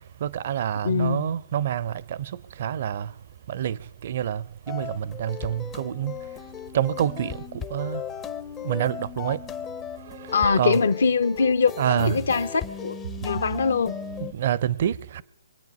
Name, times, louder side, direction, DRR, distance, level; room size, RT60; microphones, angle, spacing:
voice 1, 0.2-3.1 3.5-6.2 6.7-8.0 8.6-9.4 10.1-10.8 11.8-12.3 14.2-15.2, right 10 dB, 50° right, 0.5 m, -27 dB
voice 2, 0.8-1.3 10.3-14.0, left 5 dB, 65° left, 0.7 m, -23 dB
sound 1, 4.7-14.3, left 8 dB, 15° left, 0.5 m, -37 dB
25.0 x 9.0 x 5.3 m
figure-of-eight pair, 140°, 0 cm